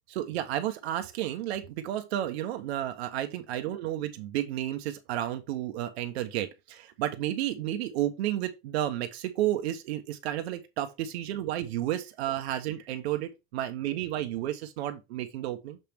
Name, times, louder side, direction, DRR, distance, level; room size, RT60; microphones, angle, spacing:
voice 1, 0.1-15.8, right 12 dB, 70° right, 1.1 m, -32 dB
6.6 x 3.4 x 4.5 m
hypercardioid pair, 115°, 32 cm